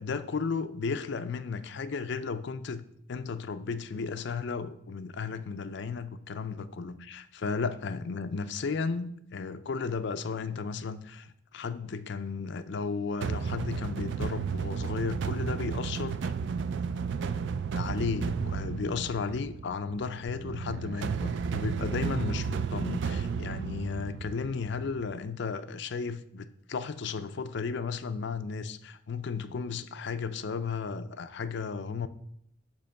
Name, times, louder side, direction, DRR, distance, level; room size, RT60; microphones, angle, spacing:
voice 1, 0.0-16.3 17.7-32.1, left 5 dB, 55° left, 12 dB, 0.4 m, -34 dB
sound 1, 13.2-25.1, right 6 dB, 60° right, 0.3 m, -33 dB
8.5 x 3.0 x 6.4 m, 0.73 s
head